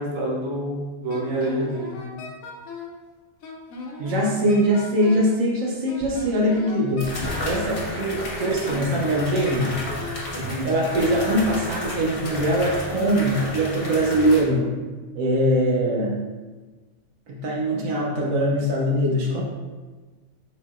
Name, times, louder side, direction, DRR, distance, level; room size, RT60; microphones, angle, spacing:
voice 1, 0.0-2.0 10.3-10.7, right 1 dB, 55° right, -4 dB, 1.1 m, -27 dB
Wind instrument woodwind instrument, 1.1-3.0 3.4-5.3 5.9-7.8 8.4-10.3, left 3 dB, 85° left, 1.1 m, -37 dB
voice 2, 4.0-9.8 10.6-14.7 15.1-16.2 17.3-19.4, equal, 80° right, -3 dB, 1.1 m, -22 dB
sound 1, 6.0-6.1 7.0-14.4, left 1 dB, 50° left, 1.0 m, -32 dB
4.0 x 3.9 x 2.4 m, 1.3 s
omnidirectional pair, 1.4 m